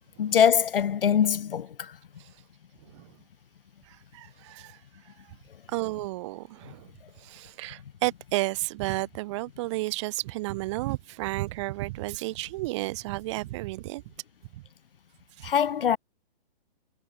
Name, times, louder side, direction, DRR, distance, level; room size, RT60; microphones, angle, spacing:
voice 1, 0.2-2.0 15.4-16.0, left 8 dB, 65° left, 2.9 m, -23 dB
voice 2, 2.8-3.2 3.8-5.3 5.7-14.0 14.5-14.6 15.4-15.5, right 20 dB, 30° right, 3.9 m, -33 dB
hypercardioid pair, 165°, 30 cm